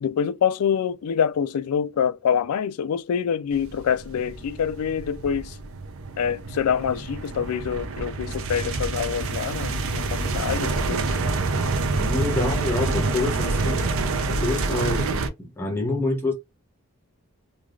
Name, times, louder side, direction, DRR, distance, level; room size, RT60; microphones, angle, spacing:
voice 1, 0.0-5.5 6.2-11.3, left 7 dB, 90° left, 0.4 m, -26 dB
sound 1, 3.5-15.3, right 3 dB, 65° right, 0.5 m, -27 dB
voice 2, 12.0-13.9 14.3-16.3, left 2 dB, 10° left, 0.7 m, -27 dB
3.2 x 2.3 x 2.4 m
head